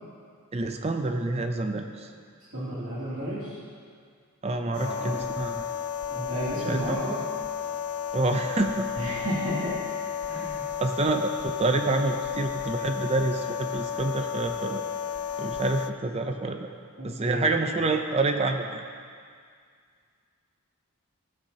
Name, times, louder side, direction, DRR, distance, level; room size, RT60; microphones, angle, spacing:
voice 1, 0.5-2.1 4.4-5.6 6.6-7.0 8.1-8.9 10.8-14.9 15.4-16.7 17.0-18.8, right 2 dB, 30° right, 5 dB, 0.5 m, -27 dB
voice 2, 2.5-3.6 4.7-5.2 6.1-7.3 8.9-9.7 10.3-10.7 17.0-17.5, right 1 dB, 60° right, -10 dB, 2.8 m, -32 dB
sound 1, 4.7-15.9, left 8 dB, 75° left, 0.4 m, -33 dB
14.5 x 12.0 x 2.8 m, 2.1 s
head